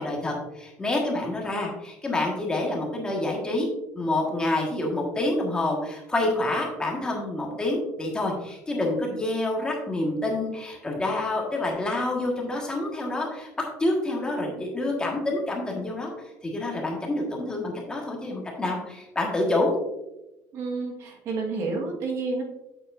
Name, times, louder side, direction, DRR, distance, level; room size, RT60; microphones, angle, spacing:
voice 1, 0.0-3.7 3.9-13.5 13.8-16.1 16.4-19.7, left 2 dB, 15° left, -1 dB, 1.5 m, -27 dB
voice 2, 20.5-22.4, right 3 dB, 50° right, 1 dB, 1.5 m, -30 dB
8.1 x 7.5 x 2.5 m, 0.94 s
cardioid pair, 160°, 6 cm